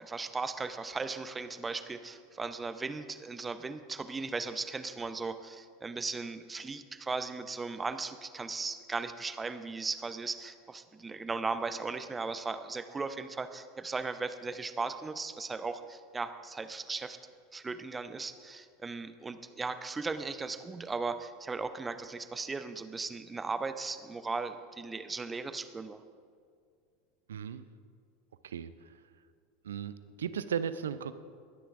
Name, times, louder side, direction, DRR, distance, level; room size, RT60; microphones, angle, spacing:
voice 1, 0.0-17.2 17.5-26.0, right 4 dB, 15° right, 10 dB, 0.7 m, -37 dB
voice 2, 27.3-27.7 28.4-28.9 29.6-31.1, right 8 dB, 75° right, 14 dB, 0.4 m, -36 dB
21.0 x 10.0 x 2.5 m, 2.1 s
figure-of-eight pair, 80°, 0 cm